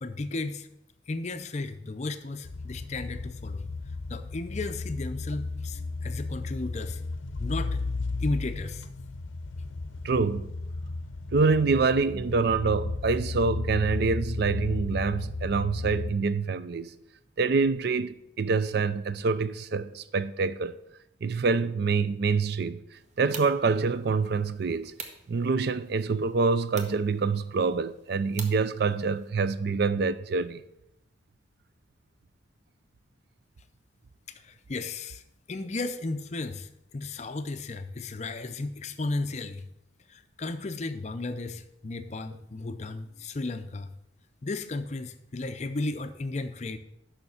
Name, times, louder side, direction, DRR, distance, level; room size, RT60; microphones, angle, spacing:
voice 1, 0.0-0.7 1.1-3.6 4.1-7.0 7.4-7.8 8.2-8.9 34.4-35.2 35.5-39.6 40.1-43.9 44.4-46.8, left 2 dB, 35° left, 0.5 m, -34 dB
sound 1, 2.4-16.1, left 3 dB, 80° left, 0.6 m, -34 dB
voice 2, 10.0-10.5 11.3-16.9 17.4-20.8 21.2-22.8 23.2-24.9 25.3-30.6, right 4 dB, 55° right, 0.4 m, -26 dB
sound 2, 22.9-29.3, right 4 dB, 35° right, 0.9 m, -47 dB
6.8 x 5.7 x 7.1 m
head